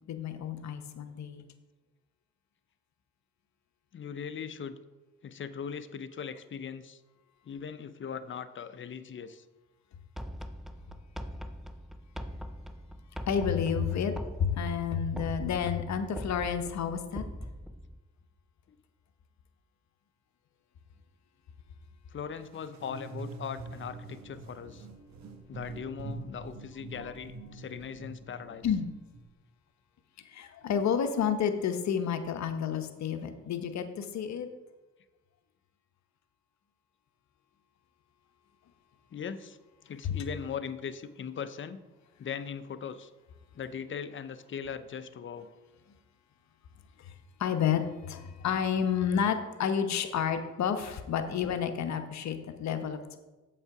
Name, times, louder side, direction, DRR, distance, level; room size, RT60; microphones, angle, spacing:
voice 1, 0.1-1.5 13.3-14.1 14.4-17.2 28.6-28.9 30.3-34.5 40.0-40.1 47.4-53.2, left 7 dB, 70° left, 7 dB, 0.9 m, -30 dB
voice 2, 3.9-4.8 5.2-7.0 7.4-9.4 22.1-24.9 25.5-28.7 39.1-39.6 39.8-41.8 42.2-43.1 43.5-45.5, left 7 dB, 40° left, 13 dB, 0.6 m, -39 dB
sound 1, 10.2-18.0, equal, ahead, 0.4 m, -42 dB
sound 2, 22.4-29.2, right 3 dB, 70° right, 1.2 m, -45 dB
7.6 x 5.5 x 4.8 m, 1.1 s
cardioid pair, 70°, 29 cm